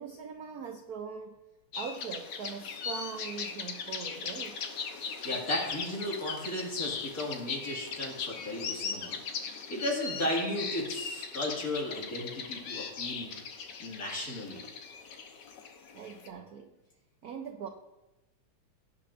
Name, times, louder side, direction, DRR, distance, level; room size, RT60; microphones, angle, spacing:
voice 1, 0.0-1.4 1.8-4.6 15.9-16.8 17.2-17.7, right 6 dB, 70° right, 5 dB, 0.9 m, -41 dB
sound 1, 1.7-16.3, left 6 dB, 60° left, 1.4 m, -39 dB
voice 2, 5.2-9.2 9.5-13.3 13.8-14.7, left 1 dB, 40° left, -3 dB, 2.5 m, -35 dB
17.5 x 9.3 x 2.6 m, 1.0 s
omnidirectional pair, 2.3 m